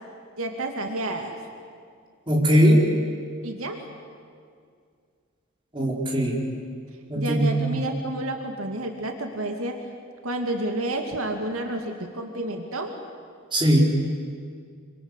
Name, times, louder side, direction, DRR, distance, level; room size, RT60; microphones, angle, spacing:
voice 1, 0.4-1.4 3.4-3.8 7.1-9.8 10.2-13.0, right 1 dB, 80° right, 4 dB, 2.4 m, -30 dB
voice 2, 2.3-2.8 5.7-6.4 7.1-7.8 13.5-13.8, equal, 25° right, -2 dB, 4.8 m, -20 dB
26.5 x 25.5 x 8.2 m, 2.2 s
head